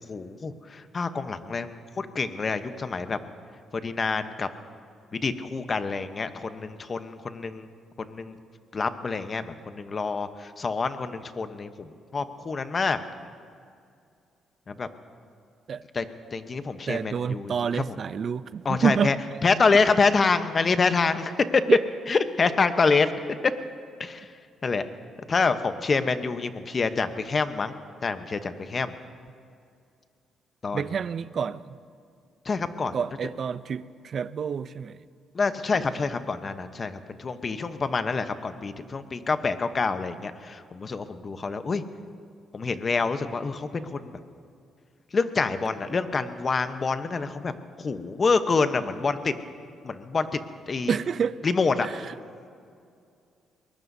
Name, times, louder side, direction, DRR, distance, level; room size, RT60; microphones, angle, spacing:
voice 1, 0.1-3.2 3.8-4.5 5.1-7.7 8.0-8.3 8.7-11.9 12.1-13.0 14.7-14.9 15.9-16.0 16.3-18.0 18.6-19.2 19.4-21.6 22.1-23.1 24.0-24.2 24.6-24.8 25.3-27.7 28.0-28.9 30.6-30.8 32.5-33.0 35.3-36.9 37.2-41.8 42.5-44.0 45.1-47.5 47.8-49.3 49.8-50.3 50.7-51.0 51.4-51.9, left 4 dB, 40° left, 10 dB, 0.9 m, -26 dB
voice 2, 16.9-19.1 21.7-21.8 30.7-31.8 32.9-35.0 35.7-35.8 50.9-51.4 51.8-52.1, right 7 dB, 55° right, 15 dB, 0.5 m, -28 dB
23.0 x 20.5 x 2.7 m, 2.4 s
cardioid pair, 90°, 0 cm